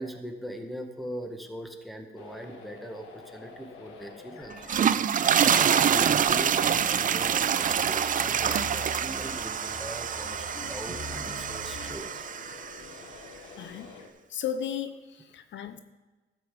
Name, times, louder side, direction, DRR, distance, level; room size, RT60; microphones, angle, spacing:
voice 1, 0.0-12.2, equal, ahead, 4 dB, 1.6 m, -41 dB
sound 1, 2.2-14.1, left 4 dB, 85° left, 1.6 m, -47 dB
sound 2, 4.5-12.8, right 8 dB, 40° right, 0.5 m, -26 dB
sound 3, 5.1-11.9, left 3 dB, 40° left, 4.0 m, -45 dB
voice 2, 13.6-13.9 14.3-15.8, left 8 dB, 70° left, 10 dB, 0.7 m, -35 dB
12.5 x 5.8 x 7.5 m, 1.2 s
cardioid pair, 90°, 20 cm